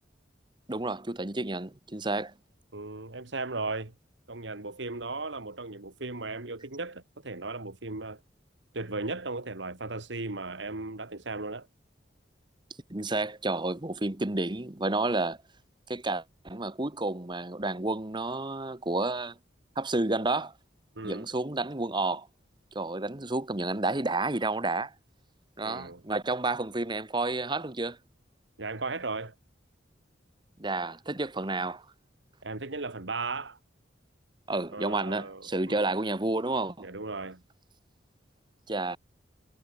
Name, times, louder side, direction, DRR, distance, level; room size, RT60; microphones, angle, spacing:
voice 1, 0.7-2.3 12.9-15.4 15.9-19.4 19.8-20.5 21.0-22.3 22.7-24.9 25.6-28.0 30.6-31.8 34.5-36.9 38.7-39.0, right 2 dB, 25° right, 1.3 m, -30 dB
voice 2, 2.7-3.9 4.3-8.2 8.7-11.7 21.0-21.3 25.6-26.0 28.6-29.3 32.4-33.6 34.7-35.9 36.8-37.4, right 3 dB, 70° right, 2.0 m, -36 dB
head